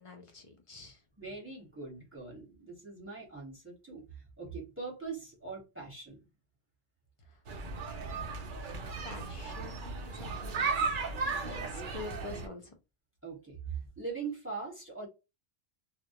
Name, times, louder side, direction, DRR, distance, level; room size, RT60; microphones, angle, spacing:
voice 1, 0.0-1.0 7.3-7.4 9.0-12.7, left 3 dB, 35° left, 0.5 m, -47 dB
voice 2, 1.2-6.3 13.2-15.1, right 4 dB, 10° right, 0.9 m, -42 dB
sound 1, 7.5-12.5, right 4 dB, 60° right, 0.6 m, -35 dB
2.2 x 2.0 x 2.7 m
omnidirectional pair, 1.2 m